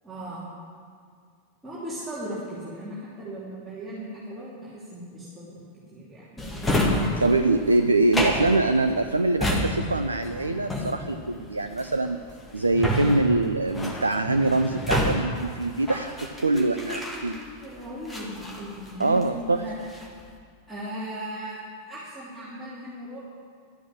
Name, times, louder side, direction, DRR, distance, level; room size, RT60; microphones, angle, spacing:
voice 1, 0.0-0.4 1.6-5.6 5.9-6.4 16.5-19.8 20.7-23.2, right 1 dB, 10° right, -10 dB, 3.4 m, -37 dB
Drawer open or close, 6.4-17.6 18.1-19.4 19.7-20.2, left 1 dB, 10° left, 1.9 m, -29 dB
voice 2, 6.8-12.2 12.5-17.4 19.0-19.6, right 2 dB, 80° right, 8 dB, 0.5 m, -24 dB
12.5 x 8.5 x 8.6 m, 2.1 s
figure-of-eight pair, 90°, 0 cm